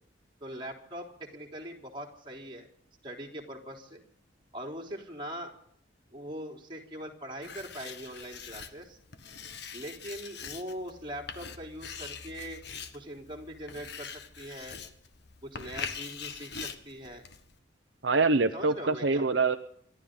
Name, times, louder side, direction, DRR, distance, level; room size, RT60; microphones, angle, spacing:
voice 1, 0.4-2.7 3.0-4.0 4.5-5.5 6.1-9.0 9.7-12.6 12.9-14.8 15.4-17.2 18.5-19.3, equal, 25° right, 0 dB, 3.6 m, -41 dB
Writing, 7.4-17.6, left 6 dB, 60° left, 1.5 m, -43 dB
voice 2, 18.0-19.6, right 3 dB, 65° right, 7 dB, 0.8 m, -25 dB
29.0 x 12.5 x 3.9 m, 0.64 s
head